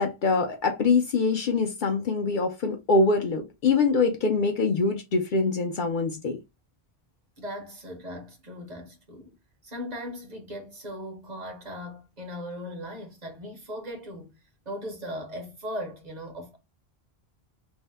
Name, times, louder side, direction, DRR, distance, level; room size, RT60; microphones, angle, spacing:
voice 1, 0.0-6.4, left 4 dB, 60° left, 0.6 m, -24 dB
voice 2, 7.4-9.4 9.6-14.4 14.7-16.6, equal, 45° right, 0.8 m, -38 dB
2.7 x 2.1 x 3.2 m
omnidirectional pair, 1.1 m